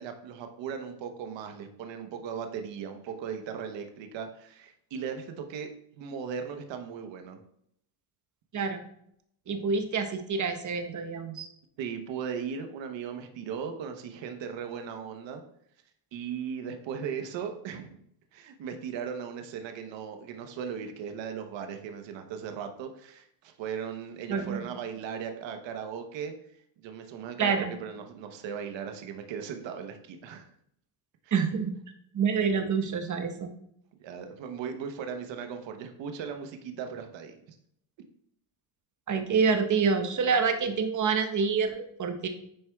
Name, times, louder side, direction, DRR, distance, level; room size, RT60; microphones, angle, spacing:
voice 1, 0.0-7.4 11.8-15.4 16.1-18.0 18.3-26.3 26.8-30.5 31.2-31.3 34.0-37.6, right 7 dB, 70° right, 6 dB, 1.0 m, -37 dB
voice 2, 8.5-8.8 9.5-11.5 24.3-24.7 27.4-27.7 31.3-31.7 32.1-33.5 39.1-42.3, right 5 dB, 40° right, 6 dB, 1.1 m, -27 dB
10.0 x 4.3 x 2.3 m, 0.71 s
cardioid pair, 85°, 46 cm